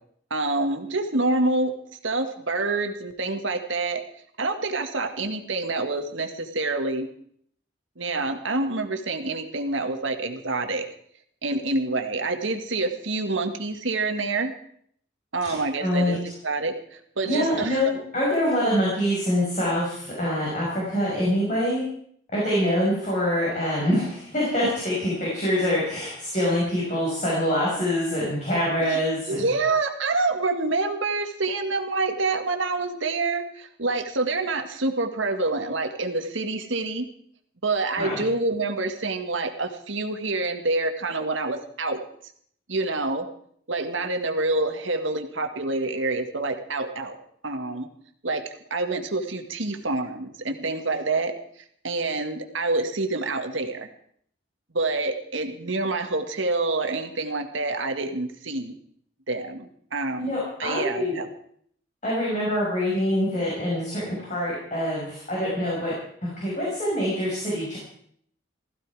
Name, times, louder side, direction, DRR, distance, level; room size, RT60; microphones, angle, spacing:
voice 1, 0.3-1.7 2.0-4.0 4.4-7.1 8.0-10.8 11.4-14.5 15.3-17.9 28.8-37.1 37.6-42.0 42.7-43.3 43.7-47.2 47.4-47.9 48.2-48.4 48.7-53.9 54.7-58.7 59.3-60.3 60.6-61.3, right 3 dB, 80° right, 6 dB, 1.8 m, -27 dB
voice 2, 15.4-16.1 17.3-21.8 22.3-29.5 38.0-38.2 60.2-61.1 62.0-65.9 66.2-67.8, equal, 35° left, -5 dB, 5.8 m, -25 dB
16.5 x 15.0 x 4.8 m, 0.64 s
head